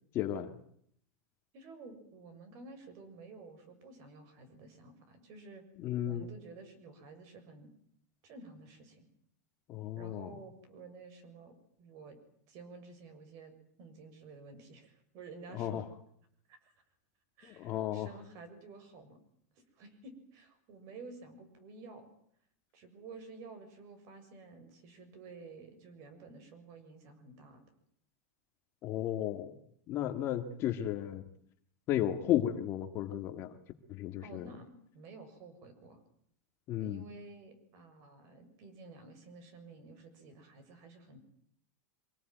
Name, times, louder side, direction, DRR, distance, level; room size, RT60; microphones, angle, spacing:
voice 1, 0.1-0.6 5.8-6.3 9.7-10.3 15.5-15.8 17.4-18.1 28.8-29.6 29.9-31.2 31.9-33.6 33.9-34.5 36.7-37.0, left 11 dB, 30° left, 7 dB, 2.0 m, -34 dB
voice 2, 1.5-5.6 6.1-7.7 8.2-9.1 10.0-12.2 12.5-15.8 16.5-16.7 17.4-19.2 19.6-22.1 22.7-27.6 34.2-36.0 36.8-41.2, right 3 dB, 40° right, 11 dB, 7.0 m, -52 dB
25.5 x 19.5 x 9.3 m, 0.67 s
supercardioid pair, 165°, 8 cm